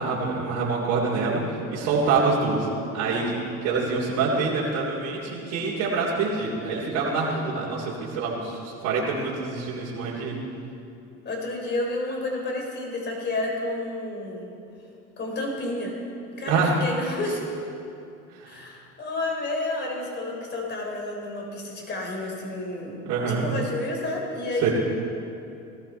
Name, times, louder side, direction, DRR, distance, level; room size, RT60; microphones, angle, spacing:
voice 1, 0.0-1.4 1.7-2.7 2.9-10.4 16.5-16.7 18.3-18.5 23.1-23.5 24.6-24.7, right 4 dB, 75° right, -6 dB, 3.2 m, -26 dB
voice 2, 11.2-14.5 15.2-15.9 16.3-17.4 18.5-24.7, left 2 dB, 35° left, -1 dB, 4.1 m, -30 dB
19.0 x 13.5 x 4.5 m, 2.7 s
supercardioid pair, 110°, 30 cm